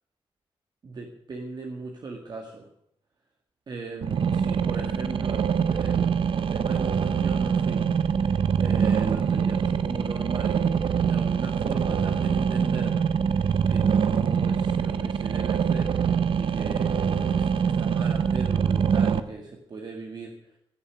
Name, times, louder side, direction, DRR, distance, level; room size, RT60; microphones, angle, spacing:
voice 1, 0.8-2.7 3.7-7.8 8.6-13.0 13.4-20.6, right 3 dB, 45° right, 1 dB, 1.8 m, -38 dB
sound 1, 4.0-19.2, right 7 dB, 60° right, 0.8 m, -24 dB
16.5 x 7.1 x 9.8 m, 0.76 s
wide cardioid pair, 155°, 10 cm